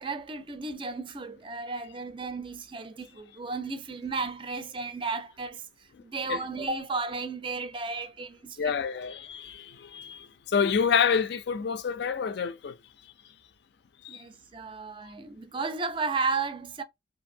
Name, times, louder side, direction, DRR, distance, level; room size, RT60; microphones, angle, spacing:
voice 1, 0.0-5.6 6.0-8.7 14.1-16.8, right 4 dB, 25° right, 0.4 m, -34 dB
voice 2, 8.6-10.3 10.5-12.7 14.0-14.2, left 6 dB, 60° left, 0.4 m, -27 dB
2.6 x 2.6 x 2.6 m
head